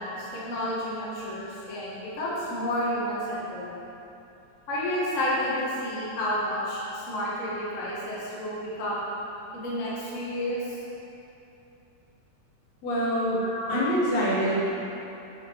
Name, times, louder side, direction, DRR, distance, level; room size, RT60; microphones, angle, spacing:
voice 1, 0.0-1.9 2.2-3.7 4.7-9.1 9.5-10.8 13.4-13.7, equal, 35° left, -8 dB, 1.4 m, -30 dB
voice 2, 12.8-13.4 13.7-14.6, equal, 65° left, -7 dB, 2.3 m, -25 dB
8.9 x 5.7 x 4.7 m, 2.9 s
omnidirectional pair, 3.7 m